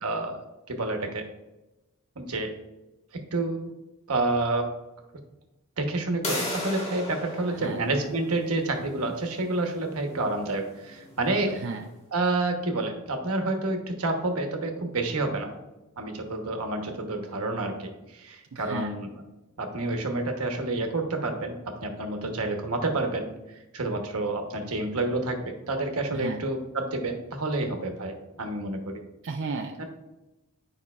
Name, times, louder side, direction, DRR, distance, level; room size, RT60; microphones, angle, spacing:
voice 1, 0.0-0.4 0.7-1.3 2.2-2.5 3.1-3.6 4.1-4.7 5.8-11.6 12.1-15.5 16.0-19.2 19.6-29.0 29.8-29.9, right 2 dB, 80° right, 4 dB, 1.0 m, -29 dB
sound 1, 6.2-11.8, left 1 dB, 30° left, 1.5 m, -37 dB
voice 2, 18.5-18.9 26.1-26.4 29.2-29.9, right 4 dB, 60° right, 3 dB, 0.5 m, -33 dB
9.6 x 5.2 x 2.4 m, 1.0 s
head